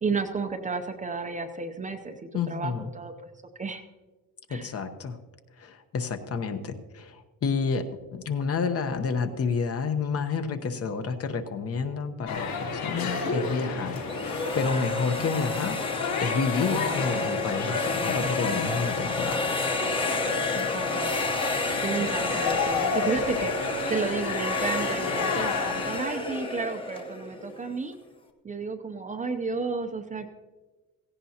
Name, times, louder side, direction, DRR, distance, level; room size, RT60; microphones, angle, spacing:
voice 1, 0.0-3.3 3.6-3.8 4.5-4.7 20.5-21.1 21.8-28.0 28.4-30.3, right 4 dB, 20° right, 6 dB, 0.6 m, -32 dB
voice 2, 2.3-2.9 4.5-5.2 5.6-7.8 8.1-15.8 16.2-19.5, left 5 dB, 40° left, 8 dB, 0.9 m, -30 dB
sound 1, 12.3-26.0, left 4 dB, 75° left, 3.4 m, -32 dB
sound 2, 14.0-27.8, left 3 dB, 15° left, 0.9 m, -30 dB
16.5 x 16.0 x 2.8 m, 1.2 s
cardioid pair, 180°, 35 cm